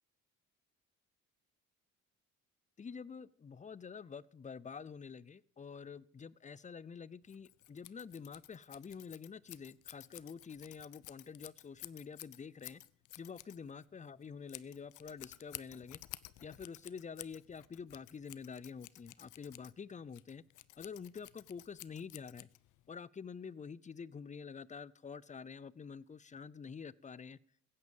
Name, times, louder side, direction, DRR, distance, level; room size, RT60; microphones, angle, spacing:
voice 1, 2.8-12.8 13.2-16.0 16.4-20.4 20.8-22.5 22.9-27.4, left 6 dB, 25° left, 21 dB, 0.5 m, -48 dB
Scissors, 7.3-22.9, left 16 dB, 80° left, 0.7 m, -53 dB
15.5 x 9.6 x 7.2 m, 0.64 s
cardioid pair, 90°, 30 cm